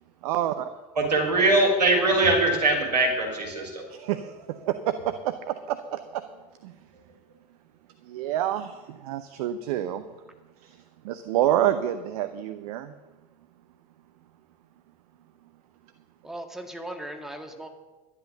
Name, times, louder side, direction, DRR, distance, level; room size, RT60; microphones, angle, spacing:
voice 1, 0.2-0.7 3.9-6.2 6.6-6.7 8.1-10.0 10.6-10.8 11.0-12.9, right 12 dB, 65° right, 10 dB, 0.8 m, -28 dB
voice 2, 1.0-3.9, right 2 dB, 85° right, 0 dB, 3.3 m, -22 dB
voice 3, 16.2-17.7, right 1 dB, ahead, 4 dB, 2.0 m, -38 dB
11.5 x 11.0 x 6.6 m, 1.2 s
figure-of-eight pair, 70°, 21 cm